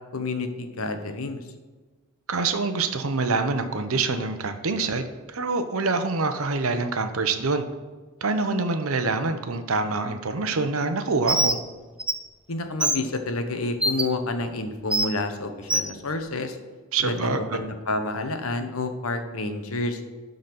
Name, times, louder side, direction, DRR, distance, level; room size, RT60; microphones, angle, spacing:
voice 1, 0.1-1.4 12.5-16.6 17.0-20.0, left 2 dB, 70° left, 7 dB, 0.9 m, -29 dB
voice 2, 2.3-7.6 8.2-11.6 16.9-17.6, right 3 dB, 70° right, 8 dB, 0.8 m, -25 dB
Bird, 11.3-11.6 12.0-12.1 12.8-13.0 13.8-14.0 14.9-15.1 15.7-15.9, right 1 dB, 5° right, 0.3 m, -22 dB
12.0 x 4.0 x 6.0 m, 1.3 s
head